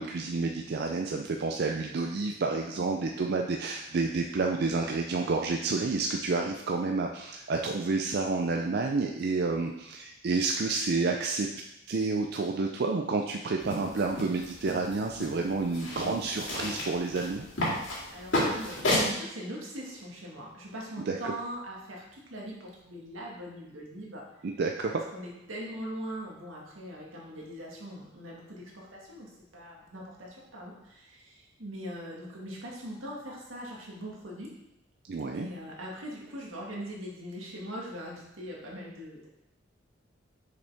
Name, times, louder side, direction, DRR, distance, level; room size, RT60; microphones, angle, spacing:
voice 1, 0.0-11.5 11.9-17.5 21.1-21.3 24.4-25.0 35.1-35.5, right 3 dB, 55° right, 3 dB, 0.4 m, -29 dB
voice 2, 2.8-3.3 17.8-24.3 24.9-34.5 35.3-39.3, equal, 85° right, -3 dB, 1.8 m, -41 dB
sound 1, 13.6-19.1, left 1 dB, 70° left, 2.4 m, -32 dB
6.6 x 5.2 x 3.5 m, 0.87 s
head